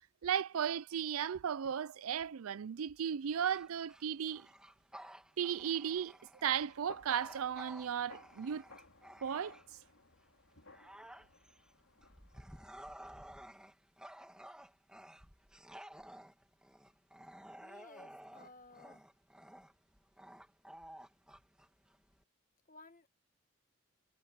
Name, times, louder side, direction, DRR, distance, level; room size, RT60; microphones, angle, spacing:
voice 1, 0.2-4.5 5.4-6.1 6.4-8.6 9.2-9.6, right 8 dB, 85° right, 0.4 m, -35 dB
Bark / Growling, 3.3-9.9 10.3-22.2, right 1 dB, 5° right, 2.5 m, -54 dB
sound 1, 6.5-12.9, left 3 dB, 90° left, 5.3 m, -60 dB
voice 2, 17.6-19.0 22.7-23.1, left 2 dB, 40° left, 1.8 m, -57 dB
head